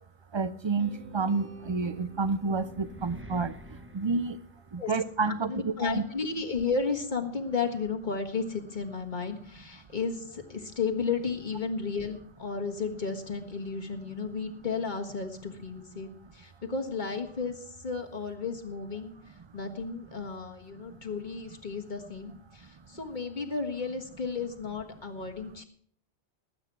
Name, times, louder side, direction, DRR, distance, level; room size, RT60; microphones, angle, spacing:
voice 1, 0.3-3.5 3.9-4.4 4.7-6.0, right 4 dB, 40° right, 14 dB, 0.4 m, -29 dB
sound 1, 0.8-4.9, right 3 dB, 70° right, 2.2 m, -49 dB
sound 2, 2.2-5.1, right 1 dB, 10° right, 1.0 m, -49 dB
voice 2, 5.2-19.1 19.5-25.6, left 5 dB, 45° left, 3 dB, 1.7 m, -33 dB
19.0 x 8.8 x 4.7 m, 0.62 s
omnidirectional pair, 1.2 m